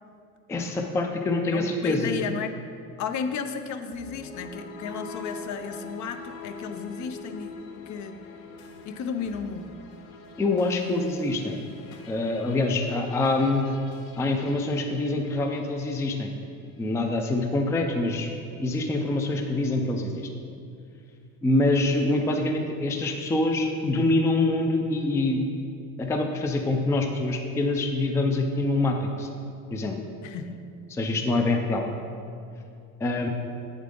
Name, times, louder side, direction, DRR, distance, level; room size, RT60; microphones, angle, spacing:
voice 1, 0.5-2.1 10.4-11.6 12.1-13.7 14.2-16.3 16.8-18.3 18.6-20.3 21.4-25.4 26.0-29.3 29.7-30.0 30.9-31.8 33.0-33.3, left 2 dB, 10° left, 3 dB, 0.4 m, -25 dB
voice 2, 1.5-2.6 3.0-8.2 8.9-9.7 30.2-30.6 31.1-31.2, left 6 dB, 55° left, 8 dB, 0.6 m, -34 dB
sound 1, 3.9-16.2, left 4 dB, 90° left, 0.8 m, -44 dB
8.5 x 7.3 x 3.7 m, 2.5 s
cardioid pair, 150°, 35 cm